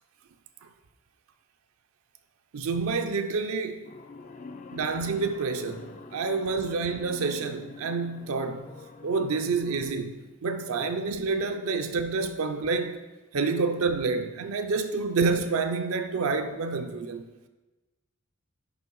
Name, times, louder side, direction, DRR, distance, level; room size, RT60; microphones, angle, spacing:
voice 1, 2.5-3.8 4.7-8.7 9.0-13.0 13.3-17.2, right 4 dB, 75° right, 0.5 m, -28 dB
sound 1, 3.8-9.9, left 3 dB, 35° left, 0.3 m, -46 dB
6.6 x 5.4 x 4.5 m
head